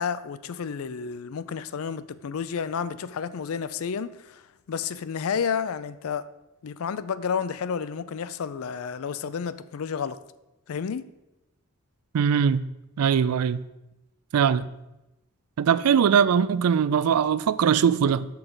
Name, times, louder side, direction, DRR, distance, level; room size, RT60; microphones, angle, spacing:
voice 1, 0.0-6.2 6.6-10.2 10.7-11.1, left 6 dB, 70° left, 0.4 m, -31 dB
voice 2, 12.1-12.6 13.0-13.6 14.3-14.7 15.6-18.3, right 7 dB, 80° right, 0.4 m, -21 dB
6.1 x 5.9 x 5.1 m
head